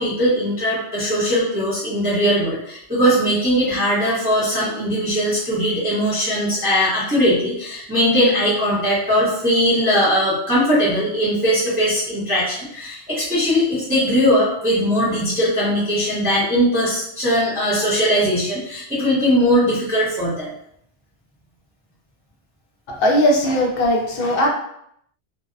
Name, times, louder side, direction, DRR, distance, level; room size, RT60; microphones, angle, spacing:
voice 1, 0.0-20.5, equal, 10° right, -9 dB, 0.6 m, -20 dB
voice 2, 22.9-24.5, equal, 65° left, 0 dB, 0.7 m, -18 dB
2.6 x 2.0 x 2.4 m, 0.72 s
omnidirectional pair, 1.2 m